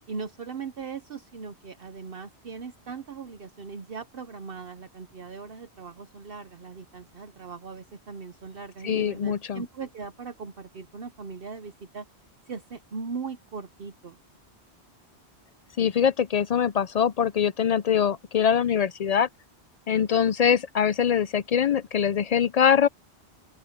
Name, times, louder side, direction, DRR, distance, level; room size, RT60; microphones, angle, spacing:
voice 1, 0.1-12.1 12.5-14.2, right 5 dB, 60° right, 1.1 m, -39 dB
voice 2, 8.8-9.6 15.8-19.3 19.9-22.9, left 8 dB, 55° left, 0.4 m, -23 dB
open air
omnidirectional pair, 1.1 m